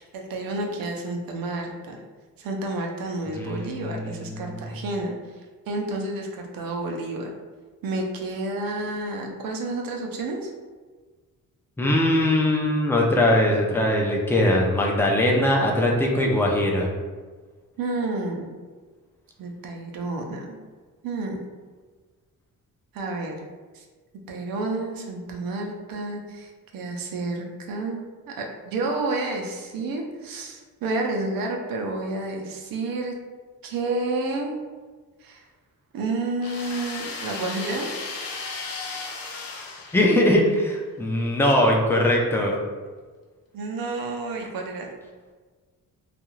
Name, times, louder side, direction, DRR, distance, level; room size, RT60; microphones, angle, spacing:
voice 1, 0.0-2.0 2.4-5.1 5.7-7.3 7.8-10.5 17.8-18.5 19.4-20.6 21.0-21.4 22.9-23.3 23.7-23.8 24.3-28.0 28.3-33.2 33.6-34.6 35.2-35.4 35.9-37.9 43.5-44.9, right 2 dB, 75° right, 2 dB, 0.6 m, -30 dB
voice 2, 3.3-4.6 11.8-16.9 39.9-42.6, left 1 dB, 5° left, -1 dB, 0.4 m, -21 dB
sound 1, 36.4-40.5, left 4 dB, 80° left, 0.6 m, -35 dB
2.4 x 2.3 x 3.0 m, 1.4 s
cardioid pair, 100°, 34 cm